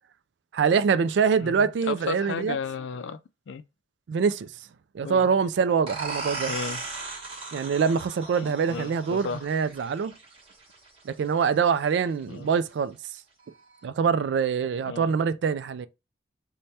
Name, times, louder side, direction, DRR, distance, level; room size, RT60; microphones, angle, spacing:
voice 1, 0.5-2.6 4.1-4.5 4.9-6.5 7.5-10.1 11.1-13.0 13.8-15.9, right 6 dB, 70° right, 0.3 m, -24 dB
voice 2, 1.4-3.2 3.5-3.6 5.0-5.3 6.5-6.8 8.4-9.5 12.3-12.5 14.9-15.1, left 5 dB, 80° left, 0.4 m, -34 dB
sound 1, 5.9-11.3, right 4 dB, 30° right, 1.0 m, -37 dB
4.1 x 2.2 x 3.2 m
head